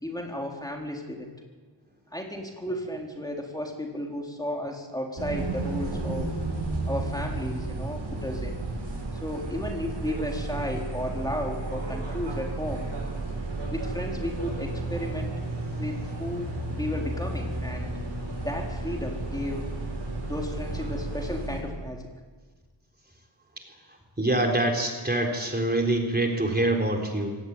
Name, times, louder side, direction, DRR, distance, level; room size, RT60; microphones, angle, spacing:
voice 1, 0.0-1.3 2.1-6.3 6.9-8.6 9.2-12.9 13.7-15.3 15.7-16.5 16.8-17.9 18.4-19.8 20.3-22.1, left 1 dB, 10° left, 0 dB, 3.9 m, -33 dB
sound 1, 5.2-21.6, right 2 dB, 80° right, 7.7 m, -32 dB
voice 2, 24.2-27.4, right 1 dB, 20° right, 1 dB, 3.8 m, -25 dB
24.0 x 18.0 x 9.6 m, 1.4 s
wide cardioid pair, 85°, 44 cm